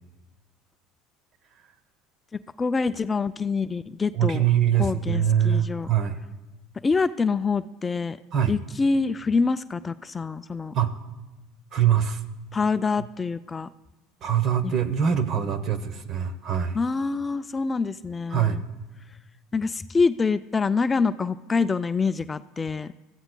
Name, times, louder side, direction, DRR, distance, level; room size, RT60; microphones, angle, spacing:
voice 1, 2.6-4.5 4.8-5.9 6.8-8.2 8.5-10.7 12.5-13.7 14.6-14.7 16.7-18.6 19.5-22.9, left 4 dB, 20° left, 13 dB, 0.3 m, -25 dB
voice 2, 4.1-6.2 8.3-8.5 10.7-11.0 11.7-12.2 14.2-16.8 18.3-18.6, right 9 dB, 50° right, 12 dB, 0.9 m, -23 dB
21.5 x 14.0 x 2.2 m, 1.1 s
supercardioid pair, 90°, 0 cm